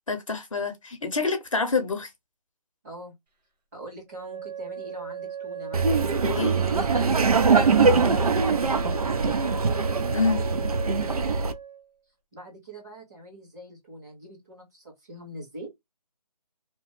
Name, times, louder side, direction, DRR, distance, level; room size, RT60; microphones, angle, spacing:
voice 1, 0.0-2.1 6.2-6.6 10.1-10.4, left 4 dB, 50° left, 0.7 m, -27 dB
voice 2, 2.8-3.1 3.7-9.8 10.3-11.2 12.3-15.7, right 1 dB, 25° right, 1.4 m, -43 dB
Wind instrument woodwind instrument, 4.1-11.8, right 8 dB, 85° right, 1.3 m, -37 dB
Laughter, 5.7-11.5, right 4 dB, 65° right, 0.5 m, -22 dB
2.9 x 2.1 x 3.0 m
hypercardioid pair, 175°, 21 cm